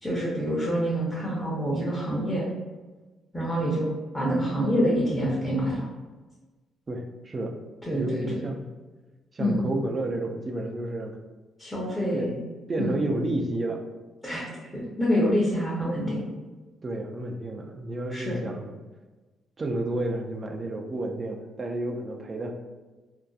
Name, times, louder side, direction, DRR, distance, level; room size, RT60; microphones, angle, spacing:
voice 1, 0.0-2.4 3.3-3.9 4.1-5.9 7.9-8.4 9.4-9.6 11.6-12.3 12.8-13.0 14.2-14.4 14.7-16.2 18.1-18.4, equal, 10° left, -7 dB, 0.7 m, -26 dB
voice 2, 6.9-7.5 7.9-8.7 9.3-11.2 12.1-12.4 12.7-13.8 16.8-18.7 19.6-22.5, right 1 dB, 35° right, 2 dB, 0.3 m, -31 dB
2.6 x 2.2 x 2.3 m, 1.2 s
cardioid pair, 90°, 0 cm